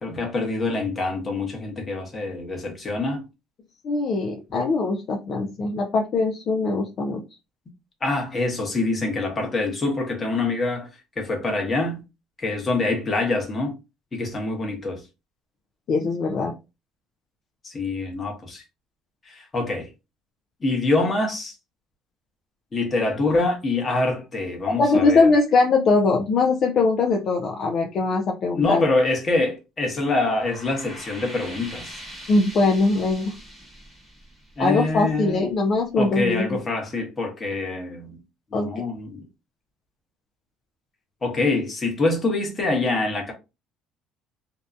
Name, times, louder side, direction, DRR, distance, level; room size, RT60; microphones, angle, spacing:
voice 1, 0.0-3.3 8.0-10.9 11.2-12.0 12.4-13.8 14.1-15.0 17.6-18.6 19.3-19.9 20.6-21.5 22.7-25.3 28.5-32.0 34.6-35.4 36.0-38.2 38.5-39.3 41.2-43.3, left 2 dB, 25° left, 0.9 m, -25 dB
voice 2, 3.8-7.2 15.9-16.6 24.7-28.8 32.3-33.4 34.6-36.6 38.5-38.7, left 3 dB, 45° left, 0.4 m, -21 dB
sound 1, 30.0-35.3, equal, 5° right, 1.0 m, -42 dB
2.7 x 2.2 x 2.4 m
cardioid pair, 130°, 0 cm